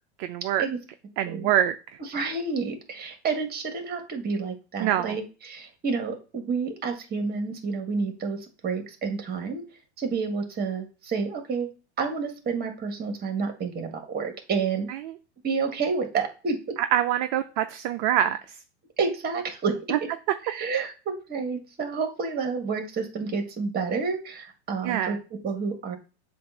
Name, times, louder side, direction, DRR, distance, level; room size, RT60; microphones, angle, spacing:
voice 1, 0.2-0.6 1.2-1.8 4.8-5.2 14.9-15.0 16.9-18.4 24.8-25.2, right 11 dB, 45° right, 9 dB, 0.6 m, -24 dB
voice 2, 2.0-9.6 10.0-11.7 12.0-14.9 15.4-16.8 19.0-20.1 20.4-26.0, right 5 dB, 25° right, 5 dB, 1.7 m, -29 dB
7.5 x 2.6 x 5.6 m, 0.34 s
hypercardioid pair, 105°, 35 cm